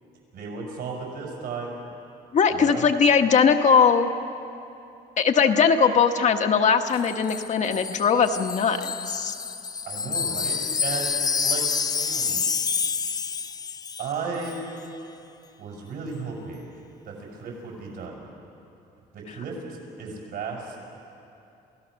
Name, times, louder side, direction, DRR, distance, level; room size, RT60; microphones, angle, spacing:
voice 1, 0.3-1.7 2.5-2.9 9.8-11.2 11.4-11.6 12.0-12.4 14.0-14.7 15.6-16.7 17.1-18.2 19.1-20.8, right 4 dB, 70° right, -1 dB, 6.5 m, -34 dB
voice 2, 2.3-4.1 5.2-9.3, left 6 dB, 45° left, 5 dB, 1.2 m, -20 dB
Wind chime, 6.9-14.2 14.4-14.6, left 5 dB, 25° left, 0.5 m, -28 dB
28.0 x 16.0 x 6.4 m, 2.7 s
cardioid pair, 110°, 17 cm